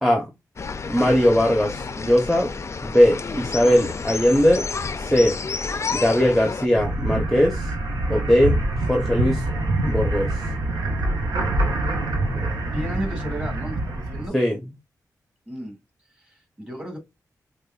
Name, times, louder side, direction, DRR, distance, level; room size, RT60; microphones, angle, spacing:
sound 1, 0.6-6.7, left 4 dB, 45° left, 0.4 m, -30 dB
voice 1, 0.9-2.5 2.8-4.7 5.0-5.4 5.9-7.7 8.1-9.4 9.8-10.4 12.4-12.5 14.3-14.6, equal, ahead, 0.7 m, -20 dB
sound 2, 6.7-14.3, right 1 dB, 85° right, 0.8 m, -25 dB
voice 2, 12.7-14.4 15.5-15.8 16.2-17.0, equal, 20° right, 2.0 m, -33 dB
4.7 x 2.2 x 2.3 m
cardioid pair, 55°, 7 cm